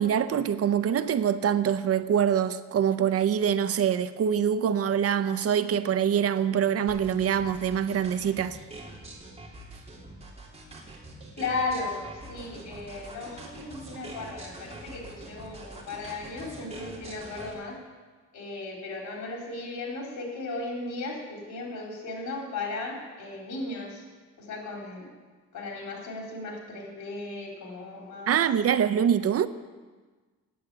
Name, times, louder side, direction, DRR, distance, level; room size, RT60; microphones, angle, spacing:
voice 1, 0.0-8.6 28.3-29.5, right 8 dB, 50° right, 0.7 m, -24 dB
sound 1, 6.9-17.5, right 2 dB, 20° right, 2.9 m, -44 dB
voice 2, 11.4-17.8 18.3-24.0 24.4-25.1 25.5-28.3, left 3 dB, 70° left, 3.6 m, -36 dB
9.4 x 8.5 x 8.8 m
cardioid pair, 90°, 30 cm